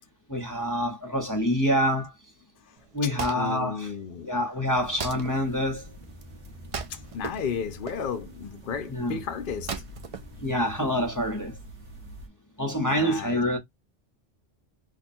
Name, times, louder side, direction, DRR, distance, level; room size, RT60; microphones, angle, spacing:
voice 1, 0.3-2.1 2.9-3.9 4.2-5.8 8.9-9.2 10.4-11.6 12.6-13.6, equal, 20° left, 0.8 m, -26 dB
Wood, 2.8-11.1, right 5 dB, 45° right, 0.4 m, -40 dB
voice 2, 3.0-4.3 6.9-9.7 12.7-13.4, left 7 dB, 60° left, 0.6 m, -34 dB
sound 1, 4.7-12.3, equal, 75° right, 1.5 m, -46 dB
3.2 x 2.2 x 4.2 m
omnidirectional pair, 1.1 m